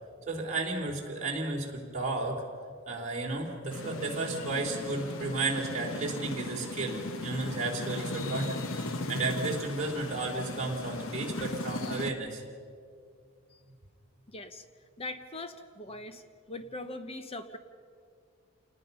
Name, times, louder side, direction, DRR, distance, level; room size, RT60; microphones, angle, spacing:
voice 1, 0.3-2.4 2.9-12.4, right 3 dB, 35° right, -2 dB, 3.3 m, -33 dB
sound 1, 3.7-12.1, left 2 dB, 65° left, 1.2 m, -37 dB
voice 2, 14.3-14.6 15.0-16.2 16.5-17.6, left 2 dB, 25° left, 9 dB, 0.9 m, -40 dB
27.5 x 19.5 x 5.5 m, 2.2 s
head